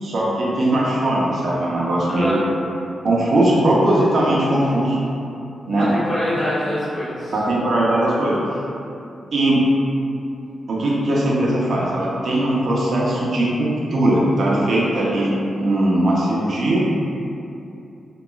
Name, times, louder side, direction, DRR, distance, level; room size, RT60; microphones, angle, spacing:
voice 1, 0.0-2.4 3.0-5.0 5.7-5.9 7.3-8.3 9.3-9.6 10.7-16.8, right 1 dB, 60° right, -5 dB, 0.5 m, -19 dB
voice 2, 2.1-2.4 5.7-7.3, left 1 dB, 40° left, -14 dB, 1.4 m, -24 dB
2.8 x 2.3 x 2.3 m, 2.7 s
cardioid pair, 80°, 0 cm